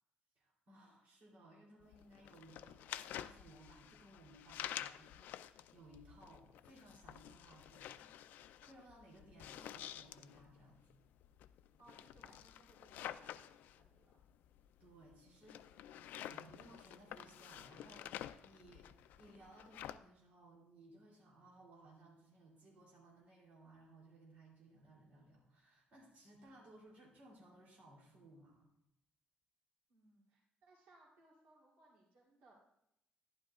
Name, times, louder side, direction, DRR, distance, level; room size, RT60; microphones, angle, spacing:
voice 1, 0.3-8.3 8.6-10.8 14.8-18.9 19.2-28.7, right 1 dB, 50° right, -3 dB, 3.2 m, -61 dB
sound 1, 1.8-20.0, left 12 dB, 70° left, 0.3 m, -50 dB
voice 2, 11.8-14.2 29.9-32.5, right 2 dB, 90° right, -3 dB, 3.1 m, -67 dB
12.0 x 11.0 x 2.4 m, 0.80 s
cardioid pair, 170°, 3 cm